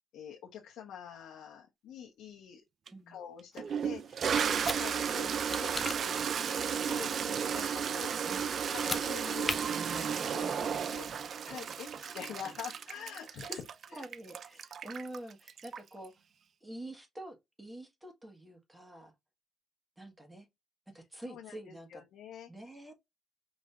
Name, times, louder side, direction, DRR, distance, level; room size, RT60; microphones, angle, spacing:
voice 1, 0.1-2.6 3.1-8.1 8.7-11.1 11.4-13.6 13.9-14.0 21.2-22.7, left 9 dB, 80° left, 1.1 m, -46 dB
Toilet flush, 2.9-3.0 3.6-16.0, right 7 dB, 55° right, 0.4 m, -33 dB
sound 1, 4.4-4.8 5.5-6.0 8.7-9.0 9.4-9.6, left 2 dB, 15° left, 0.7 m, -35 dB
voice 2, 8.3-8.6 12.0-12.2 12.4-12.6 13.5-13.6 13.9-16.2 16.6-19.1 20.0-20.5 20.9-22.0 22.5-23.0, right 1 dB, 10° right, 1.6 m, -47 dB
5.1 x 3.2 x 2.5 m
cardioid pair, 90°, 0 cm